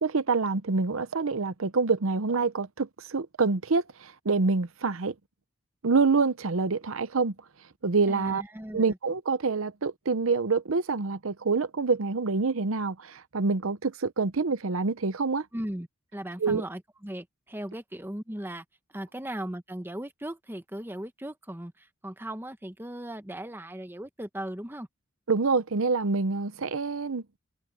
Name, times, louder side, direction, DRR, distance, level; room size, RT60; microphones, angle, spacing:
voice 1, 0.0-5.1 5.8-7.3 7.8-8.4 8.7-15.5 16.4-16.6 25.3-27.2, right 4 dB, 75° right, 0.8 m, -26 dB
voice 2, 8.1-9.0 15.5-18.6 18.9-24.9, right 1 dB, 10° right, 0.9 m, -38 dB
head